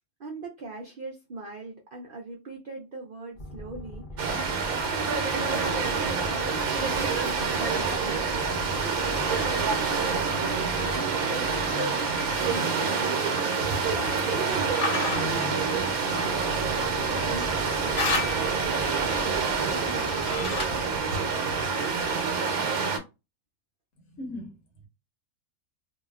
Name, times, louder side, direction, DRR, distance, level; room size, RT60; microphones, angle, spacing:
voice 1, 0.2-13.6 14.3-14.7 15.0-19.6, right 2 dB, 65° right, 0.5 m, -40 dB
sound 1, 3.4-21.4, left 1 dB, 50° left, 0.6 m, -41 dB
sound 2, 4.2-23.0, right 5 dB, 85° right, 1.2 m, -27 dB
sound 3, 14.8-15.2 17.9-18.6 20.0-20.9, left 3 dB, 85° left, 1.4 m, -30 dB
voice 2, 24.0-24.9, left 1 dB, 65° left, 1.2 m, -40 dB
3.0 x 2.1 x 2.3 m
omnidirectional pair, 1.5 m